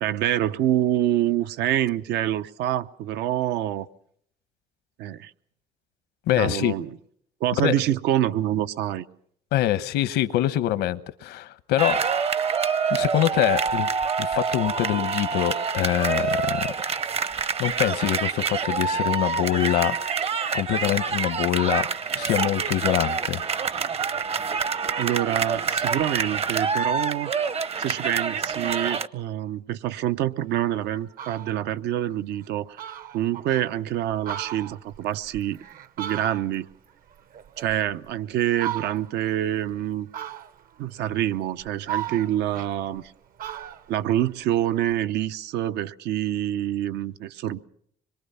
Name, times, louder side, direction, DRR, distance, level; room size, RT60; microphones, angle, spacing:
voice 1, 0.0-3.9 5.0-5.3 6.4-6.9 7.4-9.1 25.0-27.3 27.8-32.8 33.1-35.6 36.0-36.7 37.6-40.1 40.8-43.0 43.9-47.6, right 12 dB, 80° right, 0.9 m, -26 dB
voice 2, 6.3-6.7 7.5-7.8 9.5-12.0 12.9-13.9 14.2-16.7 17.6-19.9 20.5-21.9 22.1-23.4, left 13 dB, 85° left, 1.1 m, -24 dB
sound 1, 11.8-29.1, right 5 dB, 35° right, 0.8 m, -26 dB
Fowl, 30.5-30.6 31.0-31.6 32.1-32.2 32.5-32.6 32.8-33.7 34.1-36.7 37.1-38.1 38.5-39.2 40.1-40.8 41.3-43.1 43.4-45.0, right 11 dB, 60° right, 1.0 m, -36 dB
25.5 x 22.5 x 5.6 m
cardioid pair, 110°, 17 cm